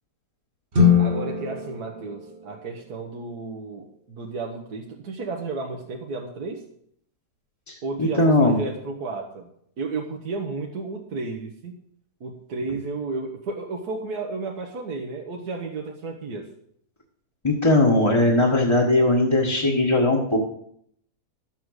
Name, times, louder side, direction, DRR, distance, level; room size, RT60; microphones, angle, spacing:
sound 1, 0.7-3.1, left 6 dB, 35° right, 1.6 m, -23 dB
voice 1, 1.0-6.6 7.8-9.5 9.8-11.7 12.2-16.5, right 3 dB, 75° right, 1 dB, 1.8 m, -33 dB
voice 2, 7.7-8.6 17.4-20.4, left 2 dB, 20° left, -3 dB, 1.4 m, -19 dB
12.5 x 7.8 x 6.5 m, 0.68 s
omnidirectional pair, 1.7 m